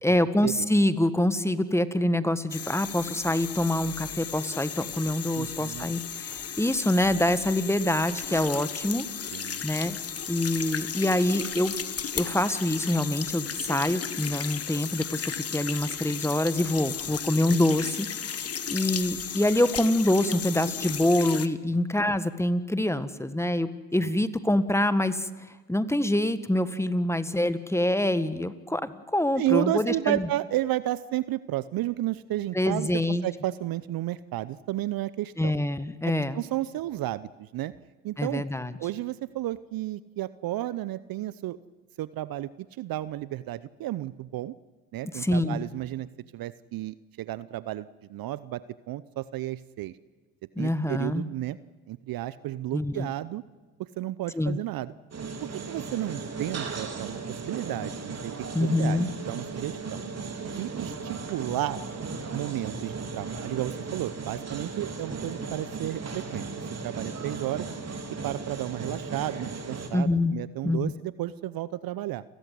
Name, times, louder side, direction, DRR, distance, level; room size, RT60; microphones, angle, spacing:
voice 1, 0.0-9.0 9.6-10.0 10.3-11.7 12.1-18.4 18.7-25.3 25.7-30.3 32.5-33.2 35.4-36.4 38.2-38.7 45.1-45.7 50.5-51.2 52.7-53.1 54.3-54.6 58.5-59.1 69.9-70.3 70.6-70.9, left 1 dB, 5° left, 13 dB, 1.6 m, -25 dB
sound 1, 2.5-21.5, left 7 dB, 35° left, 1.4 m, -35 dB
voice 2, 5.3-5.9 9.3-9.6 17.1-17.2 21.7-21.8 24.0-24.1 29.4-35.5 36.3-37.7 38.0-38.4 38.8-41.6 42.0-42.5 42.8-44.5 44.9-49.9 50.6-51.6 51.9-53.4 54.0-54.9 55.4-58.3 58.6-59.0 59.3-60.0 60.5-61.8 62.3-67.7 68.2-72.2, right 14 dB, 55° right, 17 dB, 0.8 m, -32 dB
sound 2, 55.1-69.9, right 4 dB, 35° right, 3.8 m, -36 dB
29.5 x 14.5 x 9.4 m, 1.3 s
hypercardioid pair, 60°, 43 cm